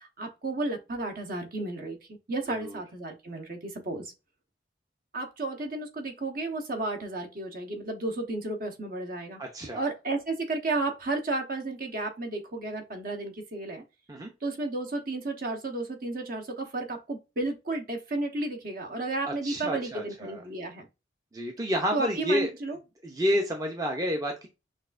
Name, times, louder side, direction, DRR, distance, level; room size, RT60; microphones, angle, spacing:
voice 1, 0.0-2.0 2.3-4.1 5.1-9.4 9.7-13.8 14.4-20.9 21.9-22.8, right 2 dB, 50° right, 1.0 m, -33 dB
voice 2, 9.4-9.9 14.1-14.3 19.3-20.4 21.3-22.5 23.0-24.5, equal, 20° right, 0.5 m, -29 dB
6.2 x 2.5 x 2.4 m
head